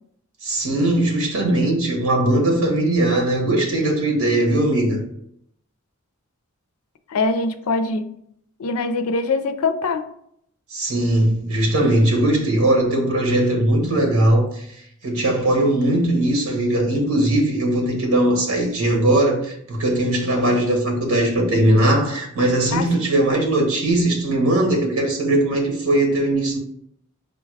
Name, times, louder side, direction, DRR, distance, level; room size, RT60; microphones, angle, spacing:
voice 1, 0.4-5.0 10.7-14.7 15.0-26.6, right 1 dB, 75° right, 1.2 m, -19 dB
voice 2, 7.1-8.0 8.6-10.0 22.7-22.9, left 3 dB, 80° left, 0.5 m, -22 dB
5.1 x 2.3 x 4.6 m
head